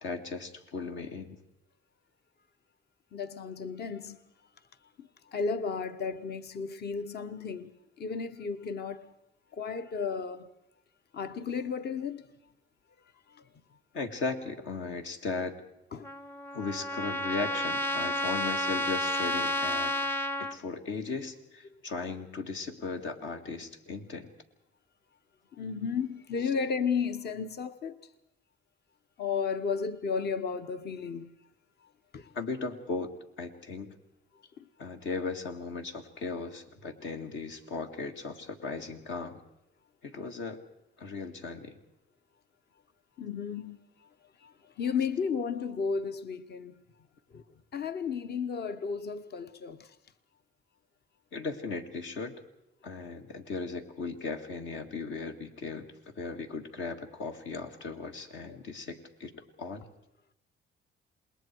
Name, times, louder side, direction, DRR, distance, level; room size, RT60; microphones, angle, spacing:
voice 1, 0.0-1.4 13.9-15.6 16.5-19.9 20.4-24.3 32.3-33.1 33.4-33.9 34.8-39.4 40.0-40.6 41.0-41.8 51.3-52.4 52.8-59.3 59.6-59.9, left 4 dB, 75° left, 2.2 m, -37 dB
voice 2, 3.1-4.2 5.0-7.7 8.0-9.1 9.5-10.5 11.1-12.2 13.3-13.4 15.9-16.1 25.5-28.0 29.2-31.3 32.1-32.3 43.2-43.8 44.4-46.7 47.3-47.4 47.7-49.9, left 5 dB, 55° left, 1.2 m, -33 dB
Trumpet, 16.0-20.6, left 1 dB, 10° left, 0.7 m, -31 dB
27.5 x 21.0 x 4.6 m
cardioid pair, 90°, 20 cm